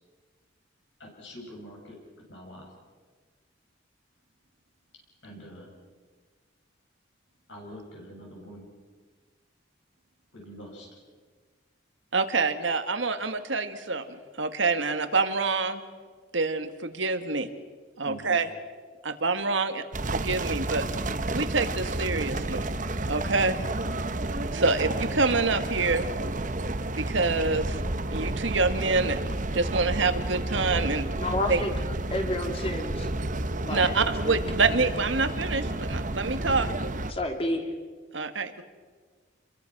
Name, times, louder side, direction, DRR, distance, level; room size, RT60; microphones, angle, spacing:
voice 1, 1.0-2.7 5.2-5.7 7.5-8.7 10.3-10.9 18.0-18.4, equal, 70° left, -1 dB, 7.4 m, -45 dB
voice 2, 12.1-14.0 14.4-15.8 16.3-17.5 18.0-18.5 19.0-19.8 20.1-20.8 21.3-22.6 23.1-23.6 24.5-26.1 27.0-27.8 28.1-29.2 29.5-31.1 31.5-31.6 33.7-36.7 38.1-38.6, right 3 dB, 75° right, 9 dB, 1.8 m, -26 dB
sound 1, 19.9-37.1, right 2 dB, 40° right, 1.1 m, -31 dB
voice 3, 31.1-31.7 32.1-33.1 33.6-33.9 34.2-34.4 37.1-37.7, left 1 dB, 30° left, 4 dB, 2.7 m, -30 dB
28.0 x 22.5 x 6.1 m, 1.5 s
head